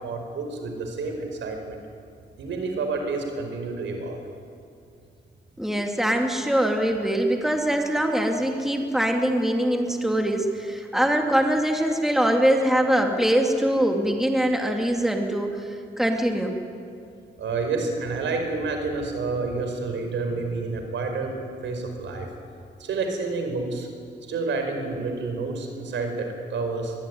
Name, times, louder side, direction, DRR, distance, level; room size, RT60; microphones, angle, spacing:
voice 1, 0.0-1.8 2.4-4.2 6.1-6.2 17.4-21.3 21.6-22.3 22.8-23.9 24.3-26.9, right 3 dB, 85° right, 4 dB, 5.1 m, -29 dB
voice 2, 5.6-15.6 16.0-16.5, right 1 dB, ahead, 2 dB, 2.9 m, -23 dB
23.5 x 22.0 x 9.7 m, 2.4 s
cardioid pair, 110°, 19 cm